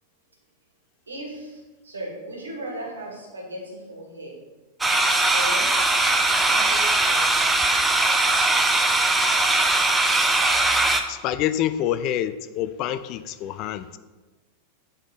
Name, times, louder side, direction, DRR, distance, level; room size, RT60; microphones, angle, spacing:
voice 1, 1.1-4.4 5.3-5.7 6.4-8.0, right 1 dB, 75° right, -1 dB, 2.0 m, -37 dB
sound 1, 4.8-11.0, right 2 dB, 10° right, 0.6 m, -20 dB
voice 2, 11.1-14.0, left 11 dB, 40° left, 13 dB, 0.3 m, -27 dB
7.3 x 4.1 x 4.9 m, 1.2 s
figure-of-eight pair, 90°, 0 cm